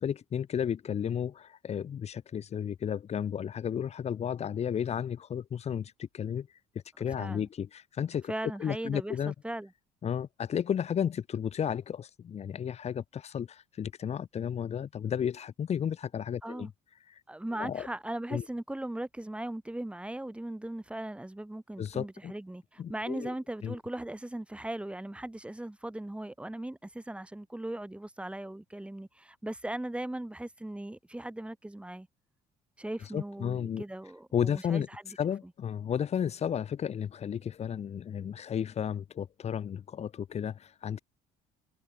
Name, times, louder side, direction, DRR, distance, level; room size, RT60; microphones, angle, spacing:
voice 1, 0.0-6.5 7.0-8.3 8.6-9.3 10.0-16.7 17.6-17.9 18.3-18.4 21.8-22.3 22.8-23.3 23.6-23.8 33.1-33.8 34.3-34.9 35.2-41.0, left 8 dB, 45° left, 2.2 m, -33 dB
voice 2, 7.1-7.5 8.3-9.7 16.4-16.7 17.3-32.1 32.8-35.2, right 1 dB, 5° right, 5.7 m, -38 dB
supercardioid pair, 90°, 15 cm